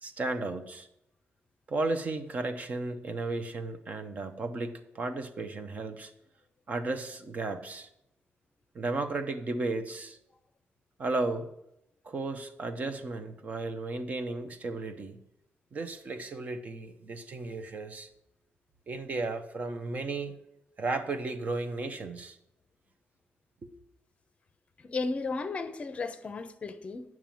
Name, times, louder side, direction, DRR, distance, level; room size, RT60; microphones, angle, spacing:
voice 1, 0.0-0.9 1.7-6.1 6.7-7.9 8.7-10.2 11.0-11.5 12.0-15.2 15.7-18.1 18.9-20.4 20.8-22.4 23.6-23.7, right 3 dB, 40° right, 0.9 m, -34 dB
voice 2, 24.8-27.0, left 3 dB, 30° left, 0.7 m, -34 dB
8.8 x 6.1 x 7.7 m
wide cardioid pair, 170°, 4 cm